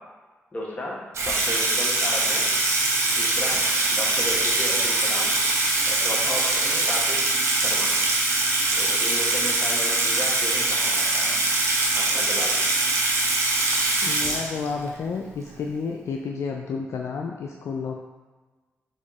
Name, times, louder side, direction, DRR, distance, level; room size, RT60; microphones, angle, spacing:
voice 1, 0.5-1.0 1.2-2.5 3.1-3.6 3.9-5.3 5.9-7.2 7.5-7.9 8.7-11.4 11.9-12.5, left 1 dB, 30° left, -4 dB, 1.3 m, -34 dB
Water tap faucet / Sink (filling or washing), 1.1-14.9, right 2 dB, 65° right, 0.8 m, -23 dB
voice 2, 14.0-18.0, left 5 dB, 70° left, 1 dB, 0.3 m, -31 dB
4.2 x 3.5 x 3.1 m, 1.3 s
supercardioid pair, 50°, 5 cm